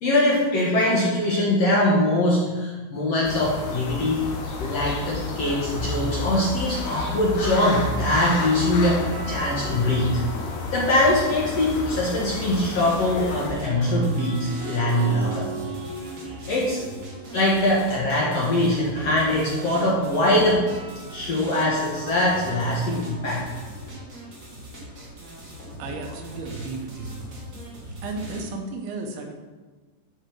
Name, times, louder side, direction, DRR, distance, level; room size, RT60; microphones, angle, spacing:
voice 1, 0.0-4.3 4.6-10.2 10.7-15.5 16.5-16.8 17.3-20.6 21.1-23.5, left 1 dB, 55° left, -5 dB, 1.9 m, -22 dB
sound 1, 3.2-13.5, left 3 dB, 85° left, 3.6 m, -31 dB
sound 2, 8.0-12.2 13.4-25.3, right 5 dB, 90° right, 4.2 m, -39 dB
sound 3, 11.5-28.4, equal, 50° right, 1.0 m, -41 dB
voice 2, 25.8-27.2 28.0-29.3, right 3 dB, 75° right, 4 dB, 2.9 m, -33 dB
12.5 x 5.7 x 4.7 m, 1.3 s
omnidirectional pair, 4.8 m